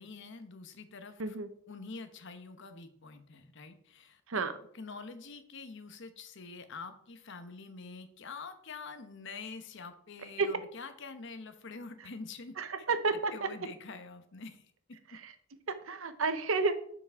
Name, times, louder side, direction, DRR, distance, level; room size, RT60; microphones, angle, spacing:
voice 1, 0.0-1.4 1.7-4.4 4.7-12.6 13.3-14.6 14.9-15.2, left 4 dB, 60° left, 9 dB, 0.9 m, -46 dB
voice 2, 12.6-13.5 15.1-15.3 15.7-16.8, right 4 dB, 75° right, 10 dB, 0.8 m, -31 dB
7.2 x 6.0 x 4.6 m, 0.64 s
head